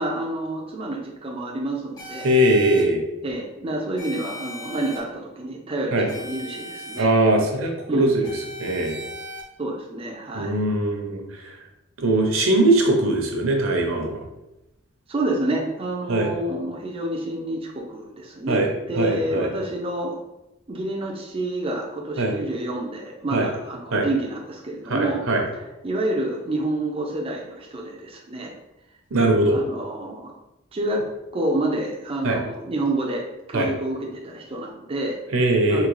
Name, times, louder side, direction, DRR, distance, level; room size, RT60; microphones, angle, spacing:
voice 1, 0.0-2.3 3.2-7.1 7.9-8.1 9.6-10.5 15.1-18.6 18.9-20.2 20.7-25.2 25.5-28.5 29.5-30.4 30.7-31.0 31.3-35.2 35.7-35.9, right 1 dB, 25° right, -1 dB, 0.4 m, -28 dB
sound 1, 2.0-2.8 4.0-5.0 6.1-7.0 8.2-9.4, equal, 20° left, 0.7 m, -38 dB
voice 2, 2.2-3.0 5.9-6.1 7.0-8.3 8.6-9.0 10.3-11.5 12.0-14.3 16.1-16.3 18.5-19.5 22.2-22.3 23.3-23.5 23.9-24.1 24.9-25.4 29.1-29.6 32.2-32.4 33.5-33.7 35.3-35.9, right 1 dB, 75° right, 2 dB, 0.7 m, -21 dB
3.7 x 2.8 x 3.1 m, 0.94 s
head